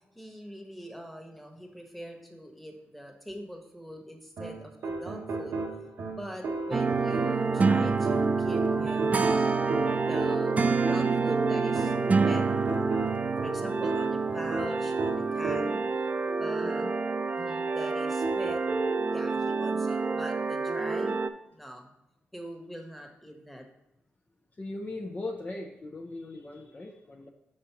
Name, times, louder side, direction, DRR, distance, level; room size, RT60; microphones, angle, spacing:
voice 1, 0.1-5.6 6.1-9.3 10.1-10.5 10.8-13.0 13.4-15.8 16.3-16.9 17.4-18.6 19.0-21.2 21.5-21.9 22.3-23.6, equal, ahead, 2 dB, 1.3 m, -42 dB
sound 1, 4.4-16.0 18.2-19.0, right 3 dB, 85° right, 0.9 m, -34 dB
sound 2, 6.7-21.3, right 4 dB, 35° right, 0.4 m, -27 dB
voice 2, 24.6-27.3, left 2 dB, 35° left, 0 dB, 0.7 m, -39 dB
5.1 x 4.2 x 5.8 m, 0.90 s
cardioid pair, 70°, 4 cm